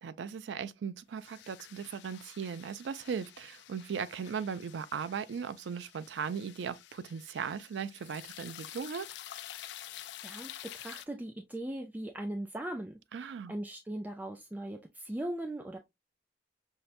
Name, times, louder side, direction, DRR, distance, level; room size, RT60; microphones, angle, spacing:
voice 1, 0.0-9.1 13.1-13.5, right 6 dB, 90° right, 0.4 m, -38 dB
sound 1, 1.2-11.1, left 12 dB, 75° left, 0.3 m, -49 dB
voice 2, 9.9-13.0 13.5-15.8, right 1 dB, 10° right, 0.3 m, -39 dB
5.6 x 2.1 x 2.4 m
head